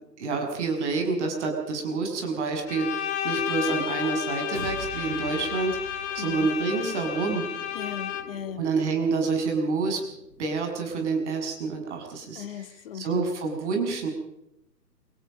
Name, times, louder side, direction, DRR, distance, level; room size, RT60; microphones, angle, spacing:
voice 1, 0.2-7.5 8.6-10.0 10.4-12.6 12.9-14.1, right 4 dB, 45° right, 3 dB, 7.0 m, -28 dB
sound 1, 2.2-2.5 4.5-10.5, right 3 dB, 70° right, 5.4 m, -45 dB
Bowed string instrument, 2.7-8.5, left 10 dB, 15° left, 1.5 m, -32 dB
voice 2, 6.2-6.5 7.7-8.6 12.4-13.2, left 9 dB, 35° left, 11 dB, 1.8 m, -37 dB
28.0 x 17.5 x 5.3 m, 0.84 s
figure-of-eight pair, 135°, 49 cm